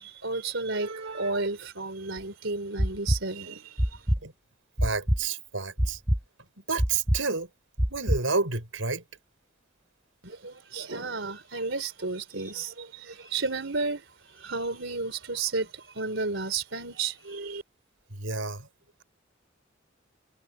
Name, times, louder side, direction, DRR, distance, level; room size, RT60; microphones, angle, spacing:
voice 1, 0.0-4.1 10.2-17.6, right 3 dB, 70° right, 4.4 m, -33 dB
sound 1, 2.2-2.3 2.8-3.2 3.8-4.2 4.8-5.2 5.8-6.2 6.8-7.2 7.8-8.2, equal, 15° right, 1.5 m, -24 dB
voice 2, 4.8-6.0 6.7-7.5 7.9-9.0 18.1-18.7, right 4 dB, 85° right, 5.9 m, -30 dB
head